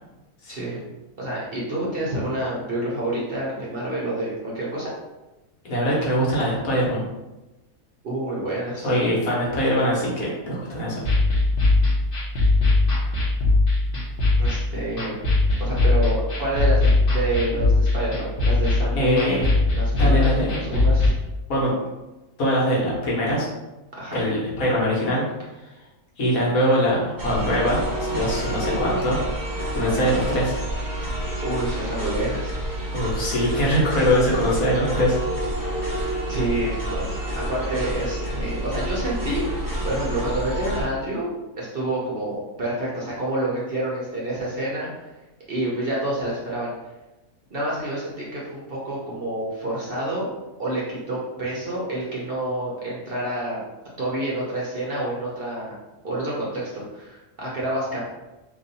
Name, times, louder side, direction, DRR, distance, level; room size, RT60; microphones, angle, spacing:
voice 1, 0.5-0.8 1.2-4.9 8.0-8.9 14.4-15.2 15.6-21.1 24.0-24.3 31.4-32.6 36.3-45.1 45.5-46.7 47.5-50.3 50.6-53.6 54.0-55.8 56.0-58.0, right 1 dB, 50° right, -5 dB, 0.8 m, -28 dB
voice 2, 5.6-7.0 8.8-11.1 18.9-19.4 20.0-20.6 21.5-21.7 22.4-23.5 24.1-25.2 26.2-29.2 29.7-30.5 32.9-35.2, equal, 70° left, -5 dB, 1.5 m, -22 dB
sound 1, 11.0-21.1, left 2 dB, 45° left, 1.0 m, -20 dB
sound 2, 27.2-40.8, right 1 dB, 25° right, 0.4 m, -28 dB
3.0 x 2.6 x 4.0 m, 1.0 s
omnidirectional pair, 1.5 m